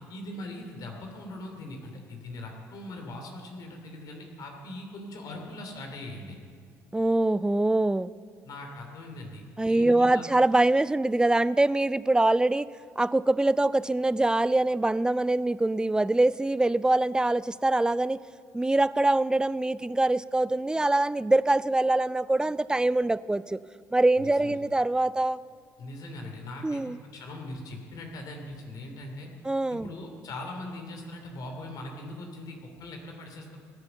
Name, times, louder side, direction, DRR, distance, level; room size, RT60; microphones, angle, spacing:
voice 1, 0.1-6.4 8.4-10.2 24.2-24.6 25.8-26.8 27.1-29.3 29.7-33.6, left 1 dB, 50° left, 3 dB, 2.8 m, -41 dB
voice 2, 6.9-8.1 9.6-12.7 13.0-18.2 18.5-23.6 23.9-25.4 26.6-27.0 29.4-29.9, right 2 dB, 10° right, 18 dB, 0.4 m, -24 dB
17.0 x 10.5 x 6.9 m, 2.1 s
figure-of-eight pair, 55°, 8 cm